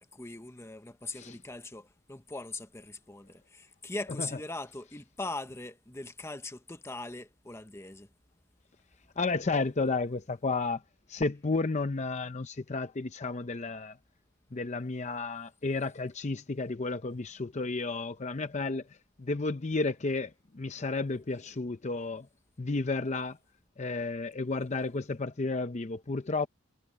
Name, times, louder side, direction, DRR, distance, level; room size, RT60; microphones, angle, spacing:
voice 1, 0.1-8.1, left 2 dB, 15° left, 0.9 m, -41 dB
voice 2, 9.2-10.8 11.1-14.0 14.5-18.8 19.2-22.3 22.6-23.4 23.8-26.5, left 3 dB, 35° left, 0.6 m, -32 dB
head